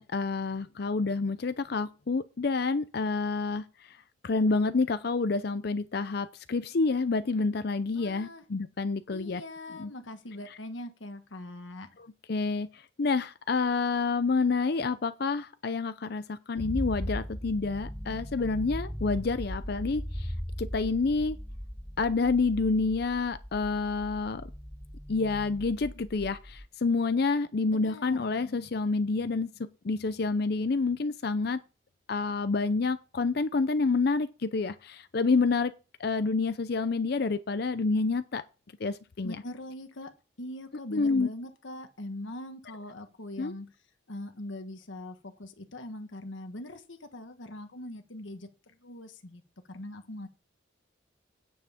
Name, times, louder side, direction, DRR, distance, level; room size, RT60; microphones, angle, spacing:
voice 1, 0.0-3.6 4.2-9.4 9.8-9.9 12.3-20.3 20.6-21.4 22.0-24.5 25.1-29.5 29.8-31.6 32.1-35.7 36.0-38.4 38.8-39.4 40.9-41.3 43.4-43.5, left 4 dB, 55° left, 0.5 m, -28 dB
voice 2, 7.9-8.4 9.1-11.9 27.7-28.3 39.2-40.1 40.4-43.7 44.1-49.4 49.7-50.3, left 1 dB, 85° left, 1.4 m, -42 dB
sound 1, 16.6-26.7, equal, 5° left, 0.5 m, -38 dB
9.4 x 5.8 x 6.9 m
head